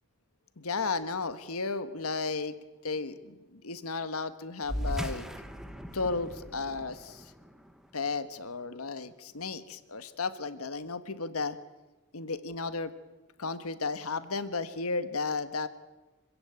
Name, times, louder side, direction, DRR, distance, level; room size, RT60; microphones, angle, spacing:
voice 1, 0.6-2.6 2.8-5.3 5.9-7.2 7.9-11.6 12.1-12.9 13.4-15.7, left 4 dB, 75° left, 12 dB, 1.4 m, -34 dB
sound 1, 4.6-9.5, equal, ahead, 1.2 m, -39 dB
25.5 x 15.5 x 8.9 m, 1.1 s
head